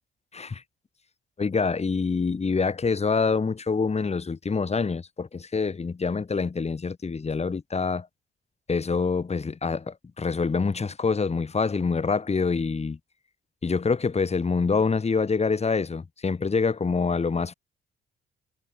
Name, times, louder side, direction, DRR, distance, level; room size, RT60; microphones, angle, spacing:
voice 1, 0.3-0.6 1.4-8.1 8.7-13.0 13.6-17.5, left 4 dB, 30° left, 7.2 m, -26 dB
cardioid pair, 90°, 20 cm